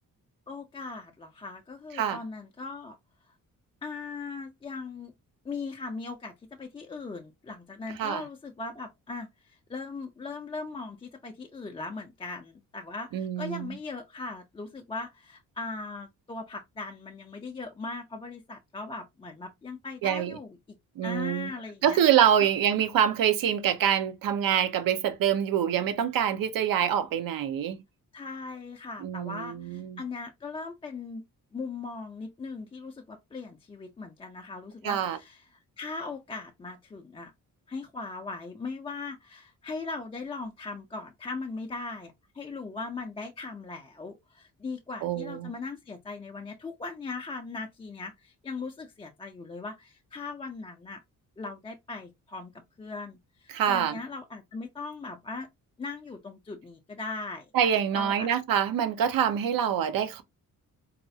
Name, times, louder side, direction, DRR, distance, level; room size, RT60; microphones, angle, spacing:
voice 1, 0.5-3.0 3.3-3.4 3.8-5.1 5.4-6.3 6.6-20.6 21.0-22.0 28.1-31.2 31.5-35.4 35.8-37.3 37.7-51.0 51.4-52.5 52.8-55.5 55.8-57.5 57.9-58.3, left 3 dB, 15° left, 0.3 m, -39 dB
voice 2, 13.1-13.8 20.0-20.4 21.0-21.5 21.8-27.8 29.0-30.0 34.8-35.2 45.0-45.5 53.5-53.9 57.5-60.2, right 9 dB, 80° right, 0.6 m, -25 dB
4.1 x 2.3 x 2.6 m
wide cardioid pair, 180°, 34 cm